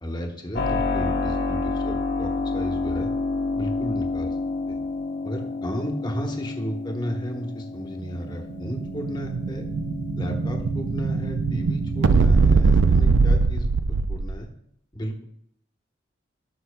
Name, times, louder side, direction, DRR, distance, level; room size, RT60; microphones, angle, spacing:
voice 1, 0.0-3.1 3.5-4.4 4.7-4.8 5.2-9.6 10.2-14.5 14.9-15.2, equal, 25° left, 3 dB, 1.1 m, -33 dB
Keyboard (musical), 0.6-13.3, left 3 dB, 60° left, 1.0 m, -30 dB
Explosion, 8.3-14.4, right 4 dB, 75° right, 0.4 m, -21 dB
13.5 x 5.7 x 2.2 m, 0.73 s
head